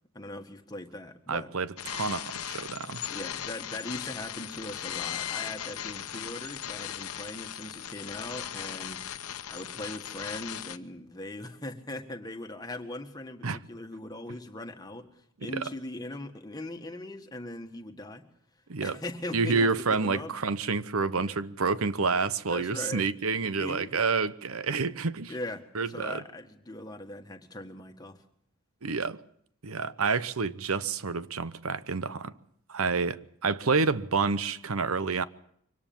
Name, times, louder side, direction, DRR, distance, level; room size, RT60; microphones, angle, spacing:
voice 1, 0.1-1.5 3.1-9.0 9.3-18.2 18.8-20.3 21.2-21.4 22.1-22.2 22.5-23.1 23.6-24.0 25.3-28.2, left 1 dB, 15° left, 1.7 m, -40 dB
voice 2, 1.3-3.0 13.4-13.6 15.5-15.6 18.7-19.0 19.3-25.3 25.7-26.2 28.8-29.2 29.6-32.3 32.7-35.2, right 4 dB, 75° right, 0.9 m, -28 dB
sound 1, 1.8-10.8, left 10 dB, 90° left, 1.0 m, -38 dB
24.0 x 18.0 x 7.2 m
head